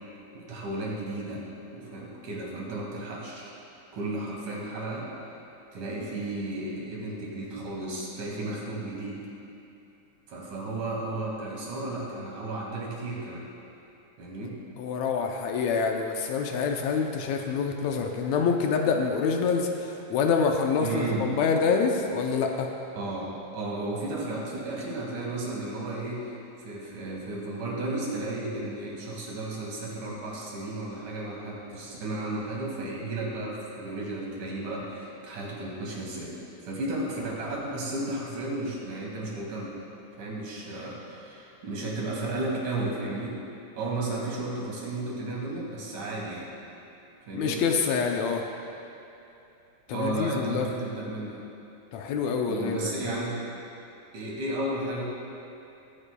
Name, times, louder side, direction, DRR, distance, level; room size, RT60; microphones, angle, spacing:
voice 1, 0.4-1.5 1.7-3.5 3.9-5.1 5.7-9.2 10.3-13.5 14.2-14.6 20.8-21.3 23.0-39.8 40.2-43.4 43.8-46.5 47.3-47.6 49.9-51.4 52.5-53.4 54.1-55.0, right 2 dB, 90° right, -3 dB, 3.6 m, -33 dB
voice 2, 14.8-22.7 47.3-48.4 49.9-50.7 51.9-52.9, left 5 dB, 75° left, 3 dB, 1.8 m, -26 dB
20.5 x 10.0 x 2.3 m, 2.9 s
omnidirectional pair, 3.4 m